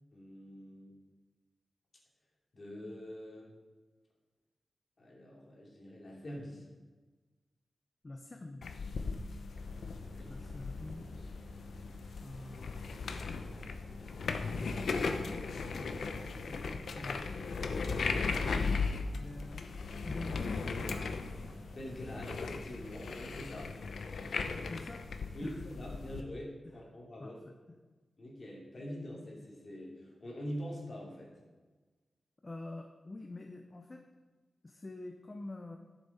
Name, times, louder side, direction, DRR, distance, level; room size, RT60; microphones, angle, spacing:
voice 1, 0.1-0.9 2.5-3.5 5.0-6.7 10.1-10.3 21.7-23.7 25.3-27.4 28.2-31.3, equal, 40° left, -3 dB, 2.7 m, -44 dB
voice 2, 8.0-8.6 10.2-11.1 12.2-12.7 14.6-15.4 15.7-16.0 16.5-17.4 19.1-19.7 20.0-21.1 24.6-25.0 25.4-25.6 26.6-26.8 27.2-27.5 32.4-34.0 34.6-35.8, left 2 dB, 25° left, 4 dB, 0.6 m, -46 dB
sound 1, 8.6-26.2, left 4 dB, 85° left, 0.7 m, -37 dB
sound 2, 9.5-23.5, right 2 dB, 75° right, 1.2 m, -58 dB
12.0 x 7.2 x 4.2 m, 1.3 s
wide cardioid pair, 175°, 0 cm